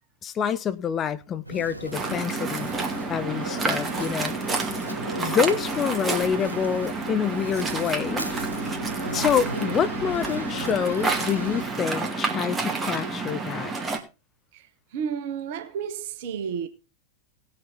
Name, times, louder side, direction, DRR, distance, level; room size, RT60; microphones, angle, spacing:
voice 1, 0.2-2.7 3.1-4.3 5.2-8.3 9.1-13.7, left 7 dB, 25° left, 0.7 m, -27 dB
sound 1, 1.4-11.6, right 1 dB, 85° right, 1.9 m, -37 dB
Waves surf, 1.9-14.0, right 3 dB, 15° right, 2.2 m, -29 dB
voice 2, 14.9-16.7, right 7 dB, 50° right, 1.2 m, -31 dB
18.5 x 6.6 x 4.0 m
figure-of-eight pair, 90°, 0 cm